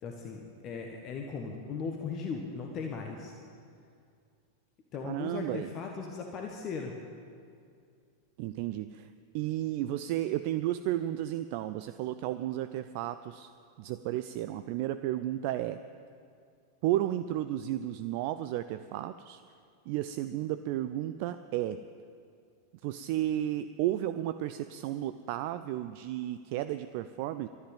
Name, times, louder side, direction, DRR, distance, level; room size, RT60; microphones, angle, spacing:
voice 1, 0.0-3.3 4.9-7.0, left 5 dB, 35° left, 2 dB, 1.4 m, -38 dB
voice 2, 5.0-5.7 8.4-9.1 9.3-13.5 13.8-15.8 16.8-19.4 19.9-21.8 22.8-27.5, right 13 dB, 45° right, 12 dB, 0.4 m, -33 dB
13.0 x 11.0 x 9.0 m, 2.3 s
figure-of-eight pair, 90°, 0 cm